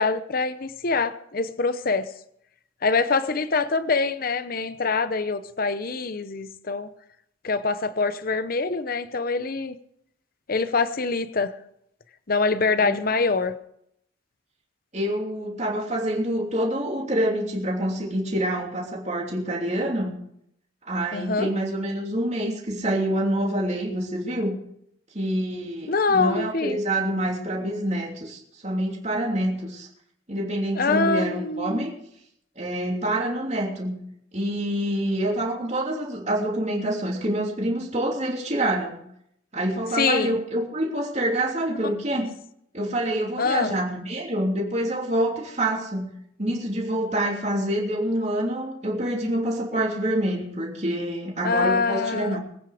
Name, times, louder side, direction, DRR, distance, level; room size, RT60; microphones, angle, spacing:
voice 1, 0.0-2.1 2.8-6.9 7.4-9.8 10.5-11.5 12.3-13.5 21.1-21.5 25.9-26.8 30.8-31.9 40.0-40.4 43.4-43.7 51.4-52.4, left 4 dB, 45° left, 12 dB, 0.8 m, -24 dB
voice 2, 14.9-20.1 20.9-24.6 25.1-29.9 30.3-31.9 32.6-34.0 34.3-39.0 39.5-42.3 42.7-46.1 46.4-52.4, right 1 dB, 35° right, -1 dB, 3.0 m, -26 dB
22.5 x 9.5 x 5.0 m, 0.74 s
head